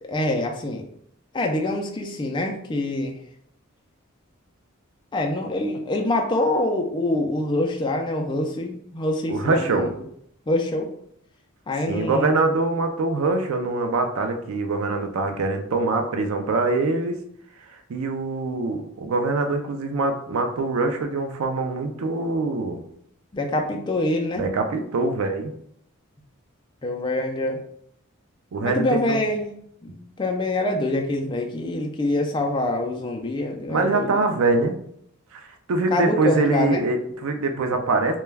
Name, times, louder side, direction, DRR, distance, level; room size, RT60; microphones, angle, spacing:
voice 1, 0.0-0.8 1.3-3.2 5.1-9.9 10.5-10.9 11.7-12.3 23.3-24.4 26.8-27.6 28.6-29.5 29.8-34.1 35.9-36.8, left 1 dB, 20° left, 2 dB, 0.3 m, -25 dB
voice 2, 9.3-9.9 11.9-17.2 17.7-22.8 24.4-25.5 28.5-29.2 33.7-34.7 35.3-38.2, right 3 dB, 80° right, 6 dB, 0.4 m, -24 dB
2.2 x 2.2 x 3.2 m, 0.69 s
head